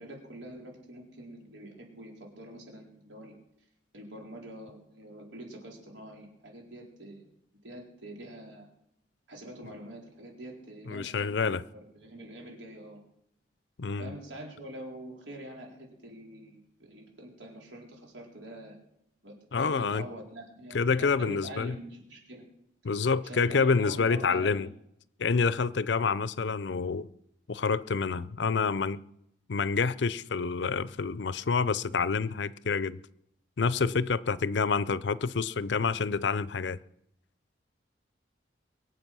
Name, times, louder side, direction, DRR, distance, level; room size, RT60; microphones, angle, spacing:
voice 1, 0.0-3.3 3.9-7.3 7.6-8.7 9.3-11.5 11.7-13.0 14.0-18.8 19.2-19.4 19.6-22.5 23.2-24.7, right 1 dB, 80° right, 4.4 m, -45 dB
voice 2, 10.9-11.6 13.8-14.1 19.5-20.0 20.7-21.8 22.8-24.7 25.2-27.1 27.5-29.0 29.5-33.0 33.6-36.8, left 5 dB, 70° left, 0.5 m, -28 dB
23.0 x 7.8 x 6.2 m
head